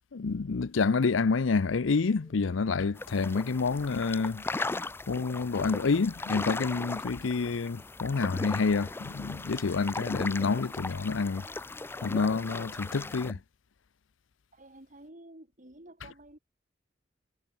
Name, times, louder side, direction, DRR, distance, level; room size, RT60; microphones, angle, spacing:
voice 1, 0.1-4.4 5.1-11.4 12.0-13.4, left 4 dB, 85° left, 0.6 m, -28 dB
sound 1, 2.9-13.3, left 3 dB, 10° left, 0.4 m, -38 dB
sound 2, 4.7-5.3 6.5-13.4, equal, 15° right, 4.9 m, -62 dB
voice 2, 14.5-16.4, right 1 dB, 40° right, 3.9 m, -51 dB
head